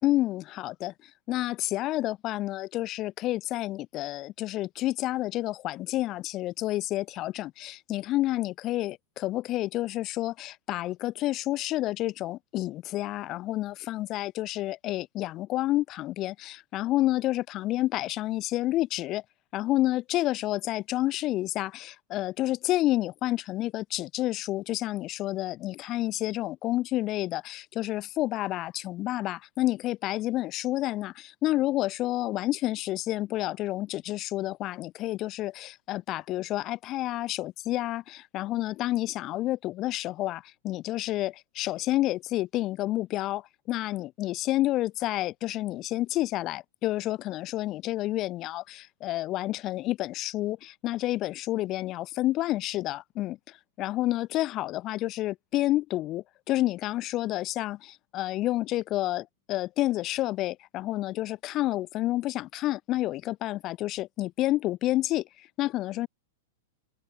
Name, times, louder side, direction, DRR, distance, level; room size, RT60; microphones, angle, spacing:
voice 1, 0.0-0.9 1.3-19.2 19.5-66.1, left 16 dB, 25° left, 4.1 m, -29 dB
open air
supercardioid pair, 170°, 0 cm